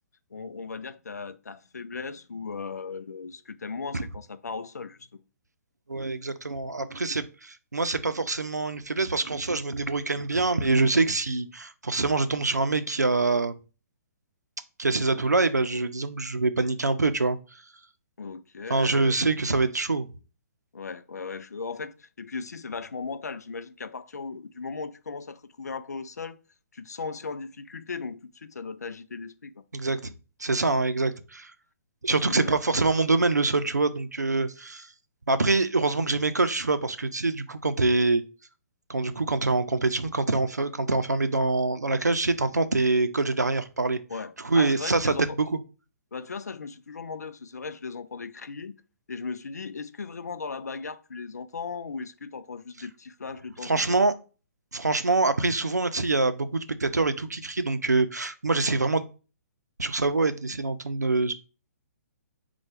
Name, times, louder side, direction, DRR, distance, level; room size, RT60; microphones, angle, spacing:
voice 1, 0.3-5.1 18.2-19.1 20.7-26.4 26.7-29.6 32.1-32.6 44.1-45.4 46.1-48.7 49.1-54.0, left 4 dB, 75° left, 0.4 m, -37 dB
voice 2, 5.9-13.6 14.8-17.6 18.7-20.1 29.7-30.1 30.4-31.5 32.0-34.9 35.3-38.2 38.9-44.0 44.4-45.6 53.6-54.1 54.7-59.1 59.8-61.3, right 3 dB, 85° right, 0.5 m, -25 dB
4.5 x 2.3 x 4.4 m
figure-of-eight pair, 125°, 9 cm